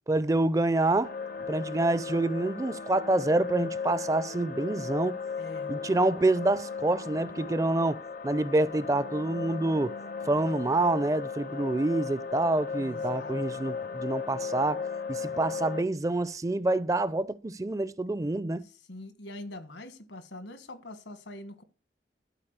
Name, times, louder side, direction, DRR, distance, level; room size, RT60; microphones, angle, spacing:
voice 1, 0.1-1.1 1.5-5.2 5.7-9.9 10.3-18.6, right 2 dB, 20° right, 0.4 m, -27 dB
sound 1, 1.0-15.8, left 5 dB, 50° left, 0.6 m, -36 dB
voice 2, 5.4-5.7 12.8-13.4 18.6-21.6, left 1 dB, 75° left, 1.4 m, -44 dB
12.0 x 4.8 x 8.0 m
head